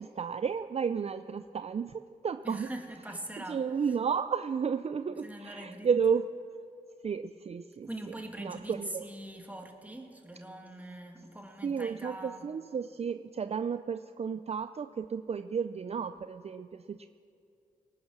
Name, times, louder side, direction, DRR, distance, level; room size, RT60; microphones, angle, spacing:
voice 1, 0.0-2.7 3.5-6.3 7.0-7.9 8.4-9.0 11.6-17.1, right 6 dB, 45° right, 11 dB, 0.4 m, -32 dB
voice 2, 2.4-3.6 5.1-5.9 7.8-12.5, right 1 dB, 10° right, 2 dB, 2.0 m, -42 dB
19.0 x 8.8 x 6.2 m, 2.5 s
cardioid pair, 60°, 15 cm